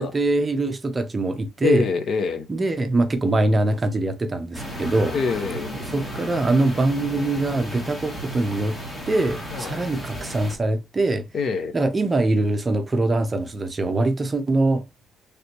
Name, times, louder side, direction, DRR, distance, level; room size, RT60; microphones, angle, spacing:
voice 1, 0.0-1.9 2.5-5.1 5.9-8.8 9.1-11.3 11.7-14.8, right 2 dB, 25° right, 0.6 m, -23 dB
voice 2, 1.6-2.5 5.1-5.7 9.5-9.8 11.3-11.7, left 5 dB, 50° left, 0.7 m, -25 dB
sound 1, 4.5-10.6, equal, 20° left, 1.5 m, -34 dB
3.3 x 2.8 x 2.8 m
cardioid pair, 120°, 0 cm